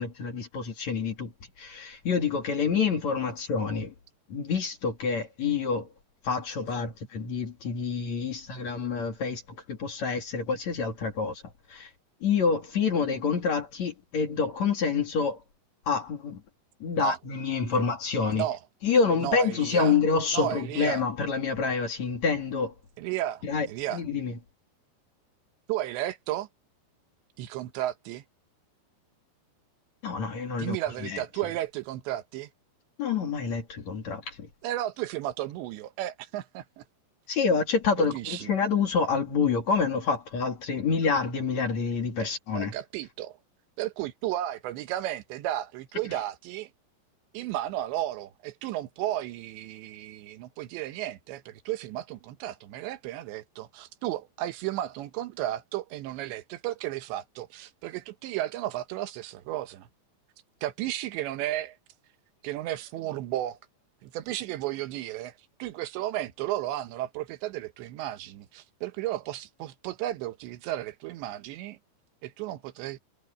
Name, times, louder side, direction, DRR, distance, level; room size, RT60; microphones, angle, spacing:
voice 1, 0.0-1.3 1.6-3.9 4.3-5.9 6.2-9.4 9.7-11.4 11.7-11.9 12.2-15.4 15.9-16.4 16.8-18.5 18.8-22.7 23.4-24.4 30.0-30.8 31.0-31.2 33.0-34.5 37.3-42.7, left 5 dB, 45° left, 3.3 m, -27 dB
voice 2, 19.2-19.9 20.3-21.0 23.0-24.0 25.7-26.5 27.4-28.2 30.6-32.5 34.6-36.8 38.0-38.5 42.2-42.3 42.5-43.4 43.8-46.7 47.3-59.9 60.6-61.8 62.4-63.6 64.0-71.8 72.2-73.0, right 14 dB, 90° right, 3.4 m, -33 dB
omnidirectional pair, 5.0 m